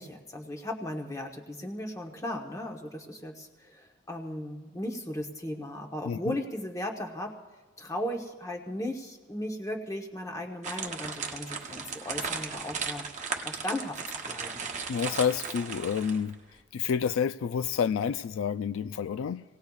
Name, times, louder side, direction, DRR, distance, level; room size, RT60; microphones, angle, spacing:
voice 1, 0.0-7.3 7.8-13.1 13.4-14.0 14.3-14.6, left 1 dB, 15° left, 1.1 m, -36 dB
voice 2, 6.0-6.4 14.9-16.4 16.7-19.4, left 7 dB, 80° left, 0.3 m, -29 dB
sound 1, 10.6-16.3, right 5 dB, 35° right, 0.9 m, -36 dB
25.5 x 18.0 x 2.4 m
head